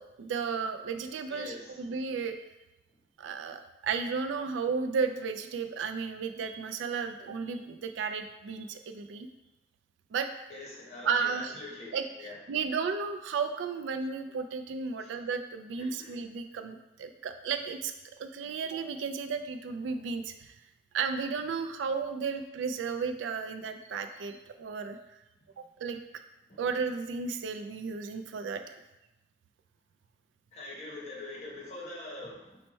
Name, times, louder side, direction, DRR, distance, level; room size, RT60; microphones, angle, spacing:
voice 1, 0.0-2.4 3.2-9.3 10.1-10.3 11.0-11.5 11.9-17.9 18.2-20.5 20.9-25.0 25.6-26.0 26.6-28.6, right 5 dB, 80° right, 7 dB, 0.3 m, -33 dB
voice 2, 1.3-1.8 10.5-12.4 15.0-15.1 15.8-16.2 25.3-25.4 26.5-26.6 30.5-32.6, left 2 dB, 35° left, -5 dB, 1.0 m, -44 dB
4.4 x 2.1 x 4.1 m, 0.97 s
head